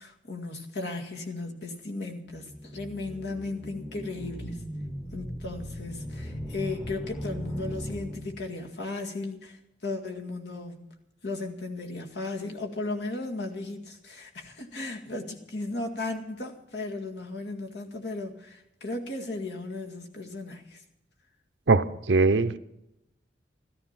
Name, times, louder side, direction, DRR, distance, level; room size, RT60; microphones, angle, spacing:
voice 1, 0.0-4.6 5.1-10.8 11.2-20.8, left 2 dB, 70° left, 2 dB, 2.0 m, -36 dB
sound 1, 2.3-8.7, equal, 15° left, 1.2 m, -38 dB
voice 2, 21.7-22.6, right 3 dB, 80° right, 12 dB, 0.8 m, -21 dB
14.0 x 13.0 x 5.8 m, 0.88 s
head